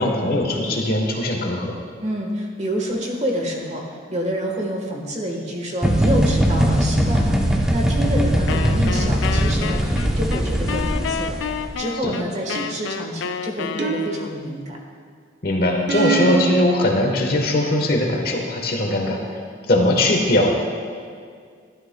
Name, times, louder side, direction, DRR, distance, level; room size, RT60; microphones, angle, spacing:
voice 1, 0.0-1.8 12.0-12.1 15.4-19.4 19.7-20.5, left 1 dB, 50° left, 1 dB, 1.2 m, -20 dB
voice 2, 2.0-3.8 4.1-14.8, equal, 35° right, 0 dB, 1.3 m, -27 dB
sound 1, 5.8-11.7, equal, 5° right, 0.6 m, -20 dB
Wind instrument woodwind instrument, 8.5-14.5, left 6 dB, 75° left, 0.4 m, -30 dB
sound 2, 12.6-13.0 13.8-14.7 15.9-16.7, right 5 dB, 60° right, 0.5 m, -24 dB
13.0 x 12.5 x 2.2 m, 2.1 s
head